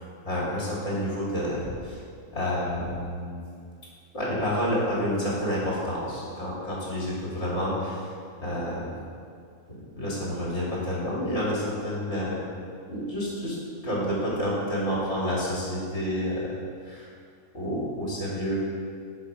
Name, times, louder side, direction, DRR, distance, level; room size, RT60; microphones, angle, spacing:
voice 1, 0.0-2.0 2.3-3.4 4.1-8.1 8.4-8.9 9.7-12.4 12.9-13.6 13.8-17.1 17.5-18.7, equal, 60° left, -6 dB, 3.0 m, -29 dB
10.5 x 5.5 x 4.9 m, 2.2 s
omnidirectional pair, 1.4 m